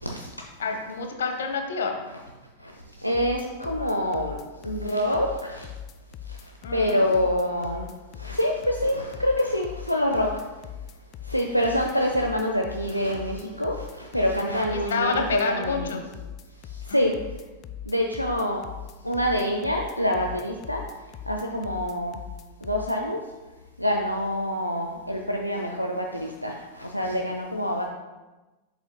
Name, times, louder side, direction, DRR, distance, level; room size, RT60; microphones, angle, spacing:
voice 1, 0.6-2.1 6.6-7.1 14.7-16.0 16.9-17.0, left 4 dB, 65° left, 4 dB, 1.0 m, -28 dB
voice 2, 3.0-4.4 4.6-5.7 6.7-7.9 8.2-10.3 11.3-16.0 16.9-17.1 17.9-18.6 19.0-20.8 21.3-22.2 22.6-23.2 23.8-27.9, equal, 90° left, 1 dB, 0.5 m, -26 dB
sound 1, 3.1-23.0, left 9 dB, 35° left, 0.3 m, -40 dB
7.8 x 6.9 x 2.2 m, 1.1 s
figure-of-eight pair, 90°, 0 cm